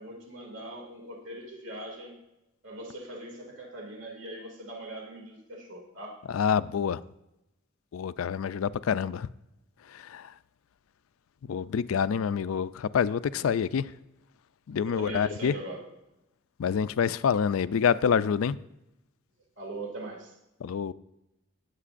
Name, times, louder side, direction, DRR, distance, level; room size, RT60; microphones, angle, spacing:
voice 1, 0.0-2.2 2.6-6.2 13.4-13.5 14.9-15.8 19.6-20.4, right 2 dB, 60° right, 2.4 m, -41 dB
voice 2, 6.3-7.0 7.9-9.3 9.9-10.3 11.4-13.9 14.7-15.6 16.6-18.6 20.6-20.9, left 7 dB, 80° left, 0.4 m, -27 dB
18.0 x 8.1 x 2.5 m
head